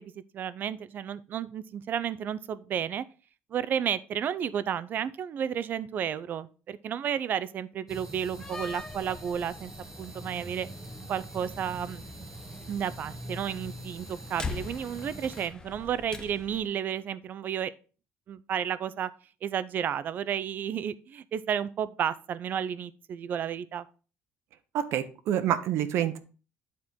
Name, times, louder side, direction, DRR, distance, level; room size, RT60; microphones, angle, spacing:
voice 1, 0.0-3.0 3.5-9.7 10.0-10.7 11.1-12.0 12.7-17.7 18.3-19.1 19.4-23.9, right 8 dB, 40° right, 0.5 m, -32 dB
sound 1, 7.9-15.5, right 1 dB, 10° right, 0.9 m, -43 dB
Slam, 8.3-16.7, left 4 dB, 15° left, 0.6 m, -44 dB
voice 2, 24.7-26.2, right 10 dB, 65° right, 0.9 m, -27 dB
9.7 x 4.4 x 3.5 m
cardioid pair, 155°, 5 cm